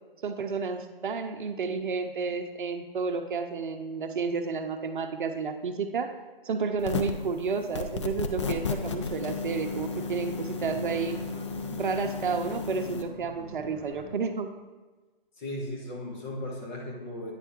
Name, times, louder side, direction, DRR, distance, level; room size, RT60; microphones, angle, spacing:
voice 1, 0.2-6.1 6.4-11.2 11.8-14.5, right 5 dB, 60° right, 7 dB, 0.6 m, -31 dB
sound 1, 6.7-14.1, right 2 dB, 15° right, 2.1 m, -46 dB
sound 2, 6.8-7.3 7.7-13.0, left 5 dB, 30° left, 0.4 m, -33 dB
voice 2, 15.4-17.3, left 1 dB, 50° left, -1 dB, 1.8 m, -36 dB
9.0 x 3.3 x 4.5 m, 1.3 s
hypercardioid pair, 150°, 29 cm